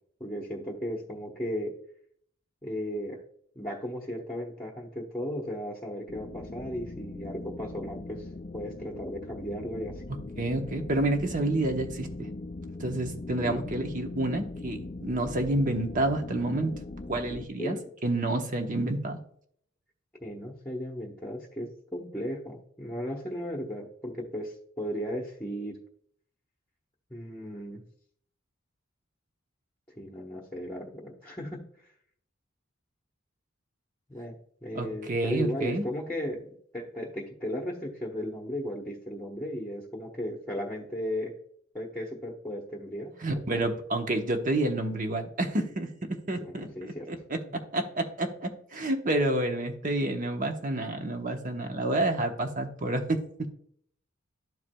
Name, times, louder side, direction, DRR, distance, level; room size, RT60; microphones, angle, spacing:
voice 1, 0.2-1.7 2.6-3.2 3.5-8.3 8.5-10.0 13.4-13.6 17.6-17.9 20.2-25.8 27.1-27.8 29.9-31.6 34.1-34.3 34.6-41.3 41.7-43.7 46.4-47.1, equal, 10° left, -2 dB, 1.0 m, -36 dB
sound 1, 6.1-17.5, left 2 dB, 30° left, 0.4 m, -40 dB
voice 2, 10.4-12.3 12.8-16.7 17.1-17.8 18.0-19.2 34.7-35.8 43.2-45.9 46.3-47.4 47.7-53.2, right 2 dB, 40° right, 5 dB, 1.0 m, -29 dB
12.5 x 4.7 x 2.3 m, 0.63 s
head